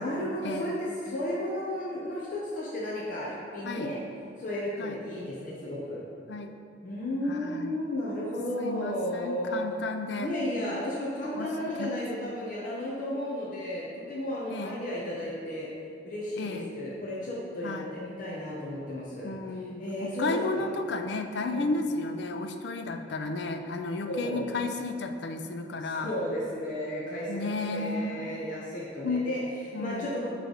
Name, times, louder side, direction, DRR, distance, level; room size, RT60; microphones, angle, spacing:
voice 1, 0.0-4.0 4.4-6.0 6.8-9.6 10.2-15.7 16.0-19.3 19.8-20.7 21.5-21.7 24.1-24.6 25.8-30.3, left 1 dB, 45° left, -6 dB, 0.8 m, -33 dB
voice 2, 7.3-7.8 8.6-10.3 11.4-11.9 14.5-14.8 16.4-16.7 17.6-18.0 19.2-26.1 27.3-28.2 29.0-29.3 29.7-30.3, left 3 dB, 60° left, 6 dB, 0.4 m, -33 dB
9.0 x 3.2 x 3.9 m, 2.4 s
head